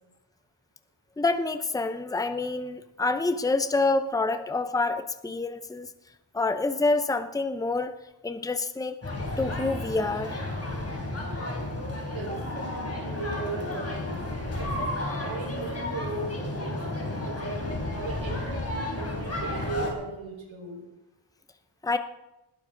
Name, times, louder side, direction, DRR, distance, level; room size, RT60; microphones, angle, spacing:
voice 1, 1.2-5.9 6.3-7.9 8.2-9.0 9.4-10.4 21.8-22.0, left 3 dB, 10° left, 9 dB, 0.7 m, -27 dB
sound 1, 9.0-19.9, left 1 dB, 30° left, 3.6 m, -32 dB
voice 2, 12.1-14.9 15.2-16.8 17.2-17.6 17.9-20.8, right 3 dB, 70° right, -1 dB, 4.9 m, -37 dB
20.0 x 13.0 x 3.9 m, 1.0 s
wide cardioid pair, 145°, 48 cm